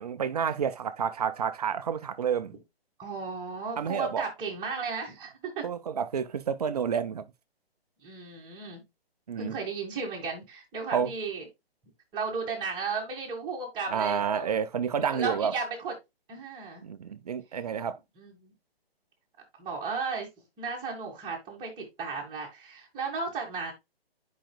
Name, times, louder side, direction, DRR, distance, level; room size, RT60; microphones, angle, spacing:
voice 1, 0.0-2.5 3.8-4.2 5.6-7.2 9.3-9.5 10.9-11.1 13.9-15.5 16.8-18.0, right 7 dB, 40° right, 0.5 m, -29 dB
voice 2, 3.0-5.7 8.0-8.8 9.4-11.5 12.1-14.5 15.1-15.9 16.3-16.8 18.2-18.5 19.6-20.3 20.6-23.7, right 4 dB, 15° right, 2.0 m, -35 dB
9.9 x 5.1 x 2.3 m
figure-of-eight pair, 140°, 31 cm